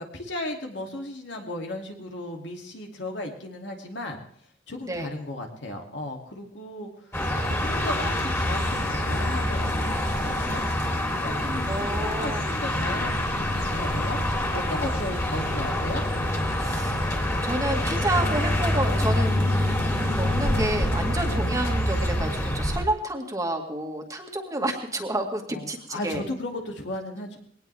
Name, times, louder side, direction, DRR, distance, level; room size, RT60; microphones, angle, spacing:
voice 1, 0.0-4.2 4.7-7.1 7.4-10.7 11.2-14.2 14.5-16.0 25.5-27.4, left 1 dB, 70° left, 1 dB, 2.9 m, -35 dB
sound 1, 7.1-22.8, left 1 dB, 15° left, 3.2 m, -26 dB
voice 2, 11.7-12.5 16.6-17.0 17.4-19.4 20.2-26.2, right 1 dB, 20° right, 3 dB, 2.0 m, -29 dB
sound 2, 12.4-21.2, left 1 dB, 55° left, 2.7 m, -41 dB
21.0 x 18.0 x 3.5 m, 0.64 s
head